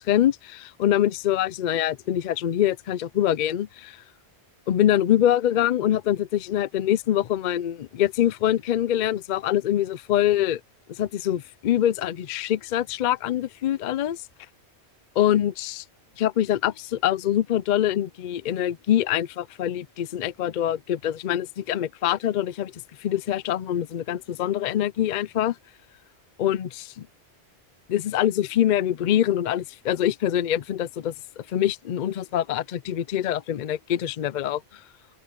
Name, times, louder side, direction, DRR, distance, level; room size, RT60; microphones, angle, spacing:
voice 1, 0.1-4.0 4.7-10.6 10.9-14.2 15.2-15.8 16.2-22.7 23.0-25.6 26.4-27.1 27.9-34.6, left 11 dB, 55° left, 0.5 m, -24 dB
omnidirectional pair, 1.1 m